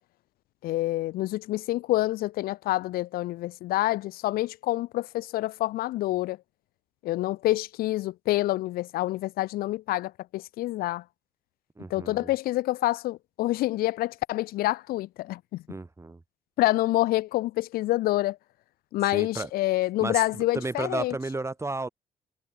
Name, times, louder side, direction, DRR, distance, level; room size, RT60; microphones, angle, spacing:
voice 1, 0.6-6.4 7.0-11.0 11.9-15.6 16.6-18.4 18.9-21.2, left 16 dB, 90° left, 0.7 m, -27 dB
voice 2, 11.8-12.3 15.7-16.2 19.1-19.5 20.0-21.9, right 2 dB, 20° right, 4.8 m, -33 dB
cardioid pair, 95°, 15 cm